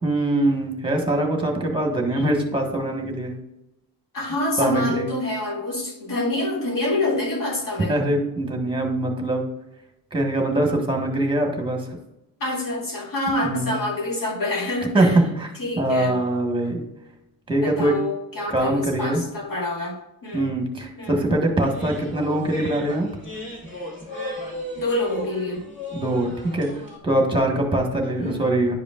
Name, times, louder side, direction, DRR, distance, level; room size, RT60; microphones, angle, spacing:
voice 1, 0.0-3.3 4.6-5.1 7.9-9.4 10.1-12.0 13.4-13.8 14.9-15.5 15.8-16.8 17.5-17.9 18.5-19.2 20.3-23.1 25.9-26.7 27.0-28.7, right 1 dB, 15° right, 1 dB, 1.4 m, -23 dB
voice 2, 4.1-8.0 12.4-15.2 15.6-16.2 17.6-20.5 21.0-21.4 24.7-25.6 28.2-28.6, left 2 dB, 60° left, -1 dB, 2.2 m, -27 dB
sound 1, 21.6-27.0, left 1 dB, 30° left, 2.4 m, -35 dB
11.0 x 5.0 x 2.4 m, 0.93 s
wide cardioid pair, 165°, 37 cm